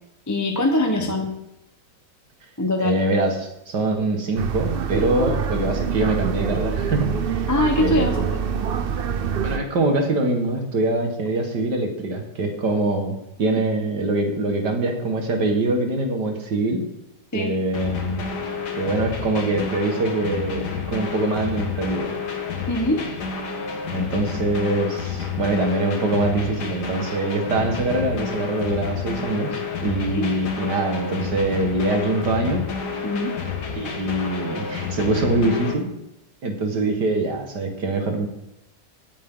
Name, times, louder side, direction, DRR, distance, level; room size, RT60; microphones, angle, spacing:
voice 1, 0.3-1.3 2.6-3.0 7.5-8.4 13.6-13.7 17.3-17.5 22.7-23.1 30.1-30.3 33.0-33.3, left 1 dB, 10° left, 3 dB, 1.0 m, -22 dB
voice 2, 2.8-7.5 7.8-8.3 9.4-16.8 17.3-18.3 18.7-22.1 23.9-32.7 33.8-35.9 36.4-38.3, right 2 dB, 65° right, 3 dB, 2.4 m, -24 dB
sound 1, 4.3-9.6, right 7 dB, 85° right, 0.5 m, -25 dB
sound 2, 17.7-35.7, left 5 dB, 60° left, 2.1 m, -30 dB
17.5 x 9.0 x 3.9 m, 0.89 s
omnidirectional pair, 2.0 m